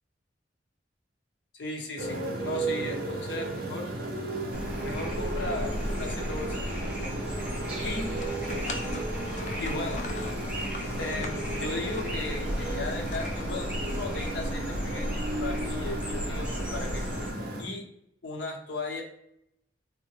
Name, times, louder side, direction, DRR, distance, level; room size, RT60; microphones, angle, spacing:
voice 1, 1.5-3.9 4.8-7.2 7.8-8.1 9.6-10.1 11.0-17.0 17.6-17.8 18.2-19.0, left 2 dB, 65° left, 0 dB, 0.7 m, -36 dB
Motorcycle, 2.0-17.6, right 2 dB, 50° right, 0.6 m, -34 dB
sound 1, 4.5-17.3, equal, 5° right, 0.6 m, -35 dB
sound 2, 7.8-14.0, left 4 dB, 40° left, 0.3 m, -43 dB
3.5 x 2.1 x 2.9 m, 0.78 s
head